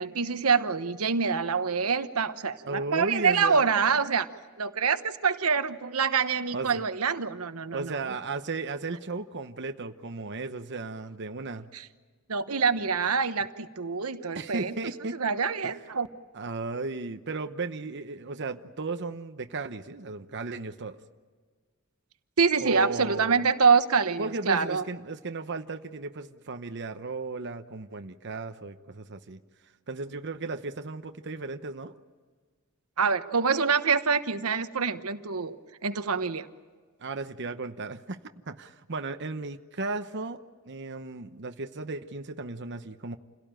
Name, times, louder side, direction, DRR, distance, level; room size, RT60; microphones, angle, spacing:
voice 1, 0.0-4.3 4.6-7.9 11.7-11.8 12.3-14.7 15.1-16.1 22.4-24.8 33.0-35.6 35.8-36.5, right 5 dB, 85° right, 10 dB, 1.1 m, -26 dB
voice 2, 2.6-3.7 6.5-6.8 7.7-11.7 14.3-15.2 15.6-15.8 16.3-21.0 22.6-23.4 24.2-29.4 29.9-32.0 37.0-38.2 38.5-43.2, right 3 dB, 55° right, 7 dB, 1.0 m, -35 dB
28.5 x 17.5 x 9.0 m, 1.5 s
head